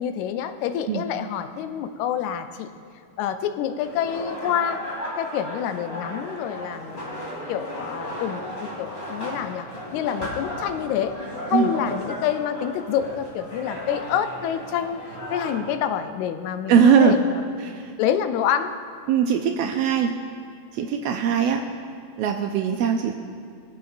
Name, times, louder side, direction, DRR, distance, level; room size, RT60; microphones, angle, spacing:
voice 1, 0.0-2.7 3.2-4.8 5.2-7.2 7.5-11.2 11.5-15.0 15.3-17.6 18.0-18.8, left 9 dB, 85° left, 9 dB, 2.0 m, -27 dB
sound 1, 3.8-15.6, equal, 20° left, 2.7 m, -35 dB
voice 2, 16.7-17.2 17.6-17.9 19.1-20.1 20.7-21.6 22.2-23.1, right 7 dB, 80° right, 4 dB, 1.4 m, -20 dB
22.0 x 7.8 x 2.6 m, 2.3 s
omnidirectional pair, 3.3 m